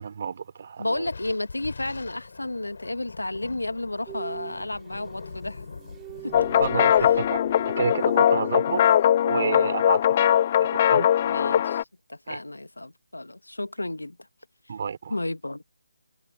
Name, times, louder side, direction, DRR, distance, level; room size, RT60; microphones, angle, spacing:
voice 1, 0.0-1.1 6.5-7.4 7.8-8.8 9.2-11.1 12.3-12.4 14.7-15.2, right 6 dB, 45° right, 3.1 m, -30 dB
voice 2, 0.8-5.6 6.2-6.5 8.3-8.5 11.2-11.8 12.1-14.2 15.1-15.6, left 2 dB, 90° left, 1.6 m, -32 dB
Thunder, 1.0-9.7, left 4 dB, 60° left, 5.7 m, -43 dB
sound 1, 4.1-9.2 9.5-9.8, right 19 dB, 15° right, 3.3 m, -44 dB
sound 2, 6.3-11.8, left 10 dB, 35° left, 0.6 m, -21 dB
figure-of-eight pair, 155°, 0 cm